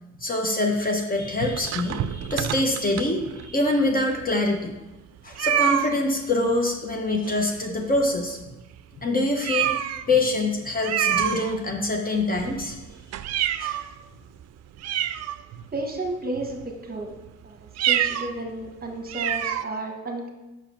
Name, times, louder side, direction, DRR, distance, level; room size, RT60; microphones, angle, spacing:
voice 1, 0.2-4.7 5.2-8.4 9.0-9.8 10.1-12.8 13.6-13.8, left 2 dB, 30° left, 2 dB, 1.1 m, -25 dB
sound 1, 1.4-3.5 4.1-4.2 4.4-4.5 5.4-6.0 7.3-7.8 8.1-8.3 8.7-8.8 9.4-10.1 10.8-11.9 12.3-13.9 14.4-14.5 14.8-15.8 16.4-16.7 17.7-18.3 18.6-18.7 19.1-19.6, right 10 dB, 60° right, 0.4 m, -27 dB
voice 2, 15.7-17.1 17.4-20.3, right 2 dB, 30° right, 2 dB, 1.3 m, -32 dB
6.1 x 4.8 x 5.7 m, 1.0 s
cardioid pair, 90°, 30 cm